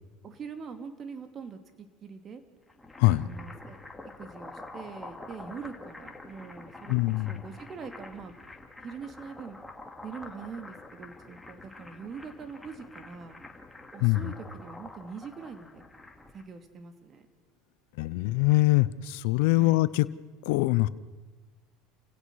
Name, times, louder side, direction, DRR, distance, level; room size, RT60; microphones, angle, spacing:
voice 1, 0.2-2.4 3.1-8.3 8.8-9.6 10.0-13.4 13.9-15.8 16.3-17.3 19.5-19.8, right 5 dB, 35° right, 8 dB, 2.7 m, -43 dB
sound 1, 2.6-16.4, left 2 dB, 5° left, 2.7 m, -47 dB
voice 2, 6.9-7.4 14.0-14.3 18.0-20.1 20.4-20.9, left 19 dB, 75° left, 17 dB, 0.7 m, -23 dB
29.5 x 16.5 x 6.4 m, 1.4 s
hypercardioid pair, 90°, 0 cm